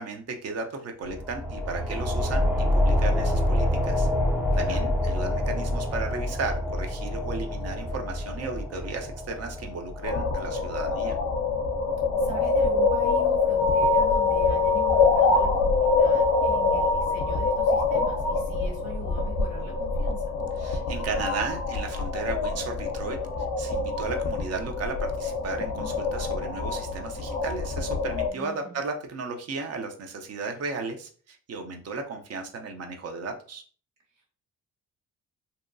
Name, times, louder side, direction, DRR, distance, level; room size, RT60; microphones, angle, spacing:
voice 1, 0.0-4.1 4.6-11.2 20.6-23.2 23.6-33.6, right 4 dB, 55° right, 5 dB, 0.6 m, -35 dB
sound 1, 1.0-12.3, left 1 dB, 5° right, 0.4 m, -27 dB
voice 2, 4.5-4.9 12.2-20.4 28.3-28.8 34.1-34.2, right 3 dB, 80° right, -2 dB, 1.2 m, -43 dB
sound 2, 10.0-28.3, left 4 dB, 50° left, 0.5 m, -25 dB
2.8 x 2.2 x 2.5 m, 0.43 s
cardioid pair, 90°, 30 cm